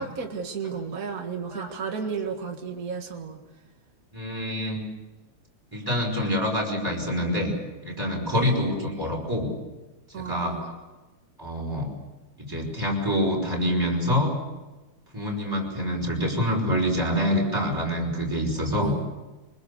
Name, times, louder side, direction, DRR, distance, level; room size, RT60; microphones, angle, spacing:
voice 1, 0.0-3.4 8.3-8.7 10.1-10.6 18.8-19.1, right 6 dB, 55° right, 4 dB, 2.2 m, -33 dB
voice 2, 4.1-4.8 5.7-7.5 7.8-9.5 10.2-10.7 11.4-11.9 12.4-14.3 15.1-19.0, equal, 10° right, -1 dB, 5.4 m, -26 dB
24.5 x 21.5 x 6.9 m, 1.1 s
omnidirectional pair, 1.8 m